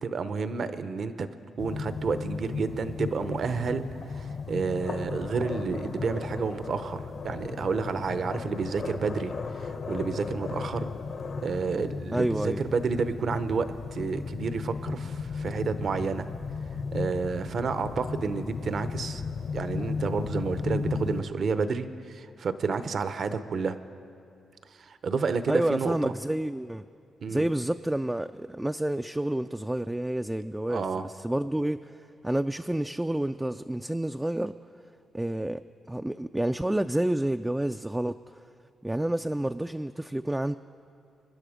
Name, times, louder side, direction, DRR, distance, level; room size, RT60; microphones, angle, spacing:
voice 1, 0.0-1.3 1.6-10.9 11.4-16.3 16.9-19.2 19.5-23.8 24.7-26.1 27.2-27.5 30.7-31.1, right 5 dB, 55° right, 11 dB, 0.8 m, -30 dB
sound 1, 1.6-21.2, left 5 dB, 55° left, 0.9 m, -35 dB
voice 2, 12.1-12.6 25.5-26.9 27.3-34.6 35.1-35.6 35.9-38.4 38.8-40.6, right 1 dB, 10° right, 8 dB, 0.3 m, -29 dB
25.0 x 10.5 x 5.0 m, 2.5 s
cardioid pair, 80°, 0 cm